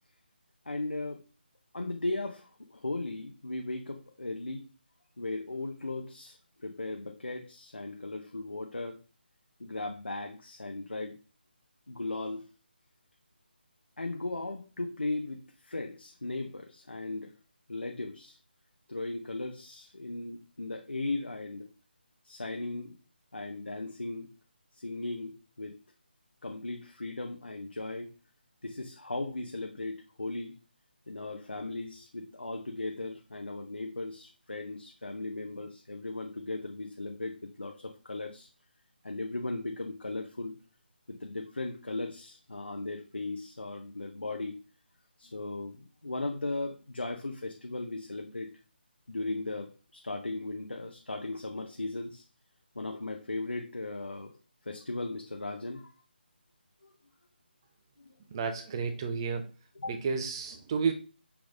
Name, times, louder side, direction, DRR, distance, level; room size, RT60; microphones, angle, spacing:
voice 1, 0.7-1.2 1.7-4.7 5.2-9.0 9.6-11.2 11.9-12.4 14.0-17.3 17.7-18.4 18.9-21.7 22.2-22.9 23.3-24.3 24.7-25.8 26.4-28.1 28.6-30.6 31.1-38.5 39.0-40.6 41.1-44.6 45.2-48.5 49.1-52.2 52.7-54.3 54.7-55.9 56.8-56.9 58.0-58.2 59.8-60.0, left 2 dB, 75° left, 2 dB, 0.7 m, -37 dB
voice 2, 58.3-59.5 59.9-60.9, right 5 dB, 25° right, 5 dB, 0.5 m, -31 dB
5.9 x 3.5 x 2.5 m, 0.33 s
figure-of-eight pair, 150°, 6 cm